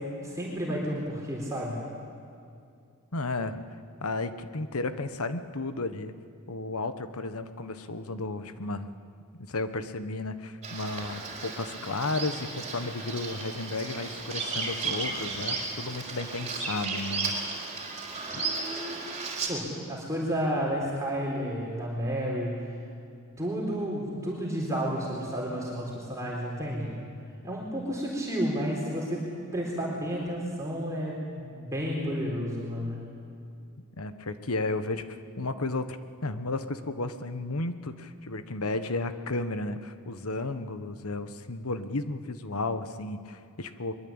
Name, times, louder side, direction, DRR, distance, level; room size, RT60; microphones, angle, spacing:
voice 1, 0.0-1.8 19.5-22.7 23.4-26.9 27.4-33.1, equal, 15° right, -4 dB, 4.2 m, -31 dB
voice 2, 3.1-3.6 4.0-6.1 6.5-8.9 9.3-17.4 18.3-18.4 34.0-36.0 36.2-43.9, left 2 dB, 75° left, 10 dB, 1.3 m, -33 dB
Bird vocalization bird call bird song, 10.6-19.5, right 3 dB, 30° right, 4.4 m, -34 dB
23.0 x 22.5 x 8.9 m, 2.5 s
head